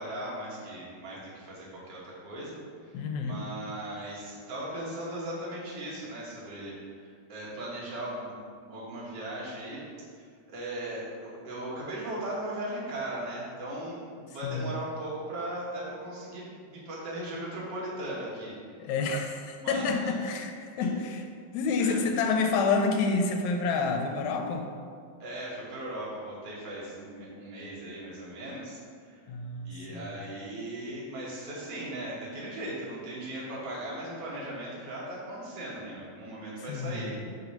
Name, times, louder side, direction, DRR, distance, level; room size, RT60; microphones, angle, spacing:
voice 1, 0.0-2.6 2.9-6.7 7.0-9.8 10.2-18.5 19.6-19.9 21.8-22.0 25.2-29.2 29.6-37.2, right 1 dB, 45° right, -6 dB, 1.6 m, -38 dB
voice 2, 2.9-3.4 14.4-14.7 18.8-20.5 20.8-21.2 21.5-24.7 29.3-30.1 36.7-37.3, left 4 dB, 80° left, 4 dB, 1.8 m, -28 dB
4.9 x 3.7 x 5.6 m, 2.1 s
omnidirectional pair, 3.4 m